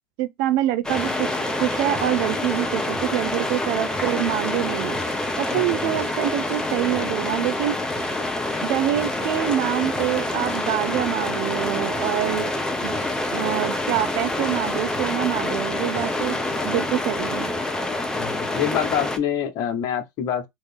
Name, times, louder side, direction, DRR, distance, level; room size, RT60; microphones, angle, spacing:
voice 1, 0.2-1.3 1.6-5.0 5.4-7.8 8.6-12.5 12.8-12.9 13.3-16.4 16.6-17.5, right 13 dB, 60° right, 0.6 m, -25 dB
sound 1, 0.8-19.2, left 2 dB, 10° left, 0.8 m, -27 dB
sound 2, 1.0-17.0, right 5 dB, 20° right, 0.9 m, -38 dB
voice 2, 5.5-5.9 16.5-16.6 18.2-20.4, left 9 dB, 50° left, 0.9 m, -26 dB
3.1 x 2.7 x 3.6 m
hypercardioid pair, 95°, 9 cm